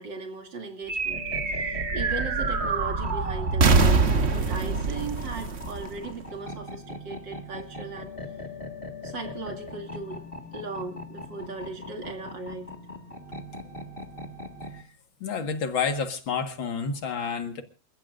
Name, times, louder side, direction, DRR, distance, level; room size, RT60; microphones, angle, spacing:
voice 1, 0.0-8.1 9.0-10.2 10.5-12.7, right 3 dB, 65° right, 4 dB, 3.4 m, -37 dB
sound 1, 0.9-6.6, right 4 dB, 40° right, 1.2 m, -25 dB
sound 2, 1.1-14.8, left 2 dB, 30° left, 2.2 m, -40 dB
voice 2, 15.2-17.6, left 5 dB, 75° left, 6 dB, 2.5 m, -29 dB
29.0 x 14.5 x 2.6 m, 0.35 s
omnidirectional pair, 2.2 m